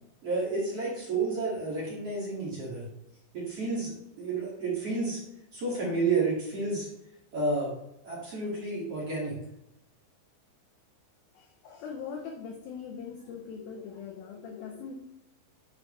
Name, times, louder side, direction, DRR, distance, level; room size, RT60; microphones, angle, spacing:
voice 1, 0.2-2.8 3.3-5.2 5.5-6.9 7.3-7.7 8.0-9.3, right 3 dB, 40° right, -6 dB, 2.5 m, -30 dB
voice 2, 11.4-14.9, left 6 dB, 90° left, 2 dB, 2.1 m, -41 dB
9.6 x 5.5 x 3.2 m, 0.83 s
omnidirectional pair, 5.3 m